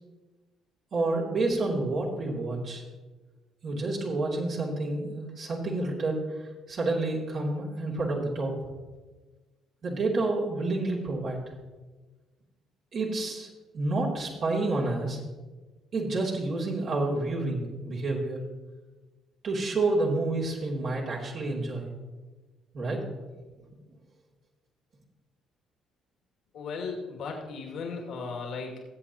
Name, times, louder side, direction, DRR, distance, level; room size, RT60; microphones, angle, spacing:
voice 1, 0.9-2.8 3.6-6.2 6.7-8.5 9.8-11.4 12.9-13.5 13.7-15.2 15.9-18.4 19.4-21.9 22.7-23.0, right 2 dB, 55° right, -4 dB, 2.9 m, -29 dB
voice 2, 26.5-28.8, left 4 dB, 65° left, -1 dB, 2.5 m, -36 dB
19.0 x 7.8 x 3.0 m, 1.2 s
hypercardioid pair, 55°, 0 cm